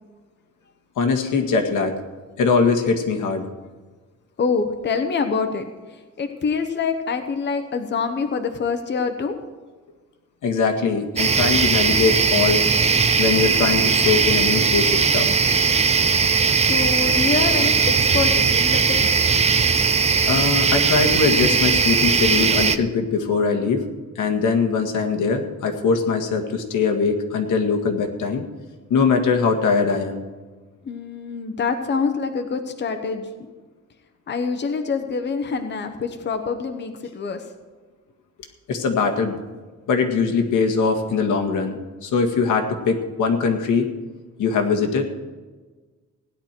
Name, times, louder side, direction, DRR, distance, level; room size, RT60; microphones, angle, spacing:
voice 1, 1.0-2.0 2.4-3.5 10.4-12.6 13.2-15.3 20.3-23.9 24.2-28.5 28.9-30.2 38.7-39.4 39.9-43.9 44.4-45.1, left 5 dB, 90° left, 3 dB, 1.8 m, -21 dB
voice 2, 4.4-5.7 6.2-9.4 16.6-19.0 30.8-33.5 34.3-37.4, left 5 dB, 35° left, 6 dB, 1.0 m, -25 dB
sound 1, 11.2-22.8, right 5 dB, 20° right, 0.4 m, -19 dB
17.0 x 10.5 x 4.5 m, 1.3 s
wide cardioid pair, 160°, 30 cm